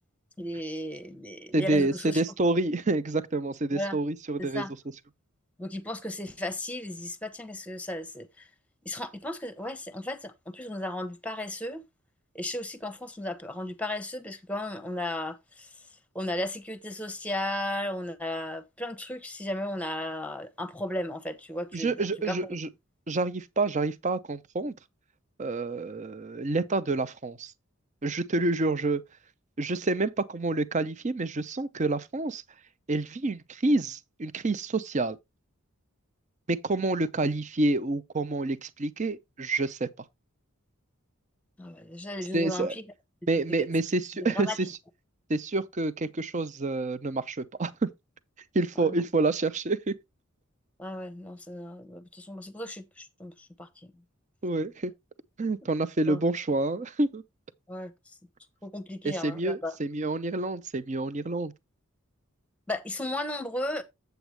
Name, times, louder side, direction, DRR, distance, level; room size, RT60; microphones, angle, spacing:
voice 1, 0.4-2.2 3.7-4.0 4.4-4.7 5.6-8.5 8.8-11.8 12.3-15.7 16.1-22.4 41.6-42.8 44.3-44.6 48.8-49.0 50.8-53.9 56.1-56.3 57.7-57.9 58.6-59.8 62.7-63.8, left 1 dB, 5° left, 1.0 m, -35 dB
voice 2, 1.5-4.7 21.7-22.7 23.1-24.7 25.4-27.5 28.0-29.0 29.6-32.4 32.9-35.2 36.5-39.9 42.3-42.8 43.3-44.7 45.3-47.9 48.5-50.0 54.4-54.9 55.4-57.2 59.0-61.5, right 2 dB, 35° right, 0.6 m, -28 dB
8.1 x 7.9 x 3.3 m
head